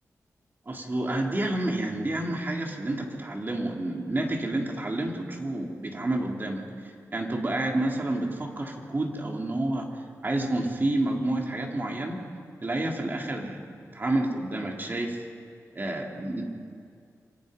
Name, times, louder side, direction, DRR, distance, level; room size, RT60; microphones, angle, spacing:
voice 1, 0.7-9.9 10.2-12.2 12.6-13.6 13.9-15.2 15.7-16.4, right 1 dB, 35° right, 1 dB, 3.4 m, -29 dB
27.0 x 25.0 x 5.3 m, 2.3 s
wide cardioid pair, 90°, 6 cm